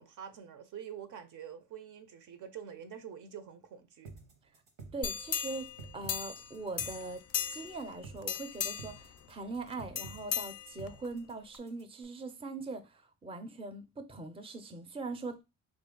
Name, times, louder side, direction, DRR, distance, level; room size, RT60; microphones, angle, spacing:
voice 1, 0.0-4.1, right 8 dB, 60° right, 0.6 m, -46 dB
sound 1, 4.0-12.0, right 4 dB, 80° right, 1.1 m, -51 dB
voice 2, 4.9-7.2 7.5-15.4, right 3 dB, 15° right, 0.5 m, -41 dB
sound 2, 5.0-6.5 6.8-7.8 8.2-9.0 10.0-11.1 11.5-11.6, left 8 dB, 45° left, 0.4 m, -36 dB
3.1 x 2.5 x 3.7 m
supercardioid pair, 70°, 35 cm